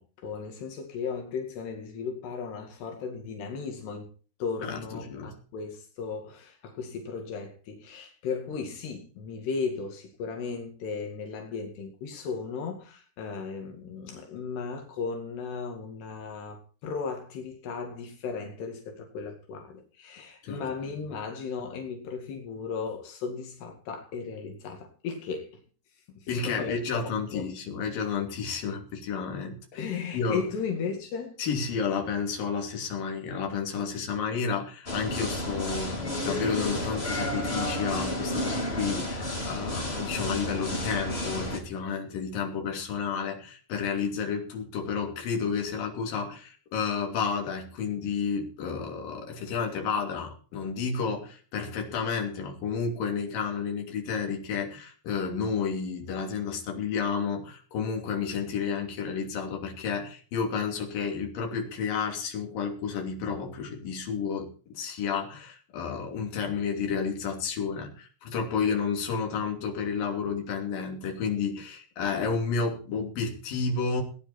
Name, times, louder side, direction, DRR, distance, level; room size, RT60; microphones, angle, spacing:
voice 1, 0.0-4.1 4.4-25.5 26.2-27.5 29.7-31.4, left 5 dB, 80° left, 3 dB, 4.3 m, -36 dB
voice 2, 4.6-5.3 20.4-20.7 26.3-29.9 30.1-30.4 31.4-74.0, left 5 dB, 60° left, 1 dB, 4.5 m, -31 dB
sound 1, 34.9-41.6, left 1 dB, 20° left, 2.2 m, -31 dB
19.0 x 10.0 x 4.4 m, 0.40 s
omnidirectional pair, 4.7 m